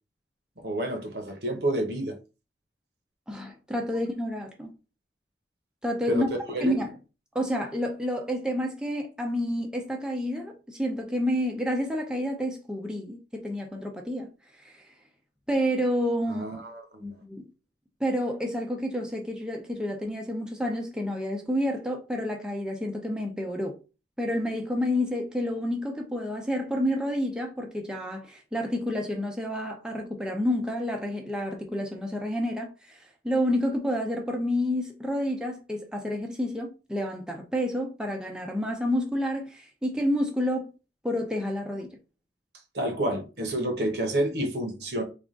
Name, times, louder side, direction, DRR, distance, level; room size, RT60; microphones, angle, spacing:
voice 1, 0.6-2.2 6.1-6.2 6.5-6.8 16.3-17.1 42.7-45.0, right 1 dB, 65° right, 1.0 m, -29 dB
voice 2, 3.3-4.7 5.8-6.3 6.6-6.9 7.3-14.3 14.6-14.8 15.5-16.5 17.0-17.4 18.0-23.8 24.2-33.0 33.2-40.7 41.0-42.0, equal, 5° right, 0.5 m, -29 dB
3.5 x 2.4 x 3.7 m
head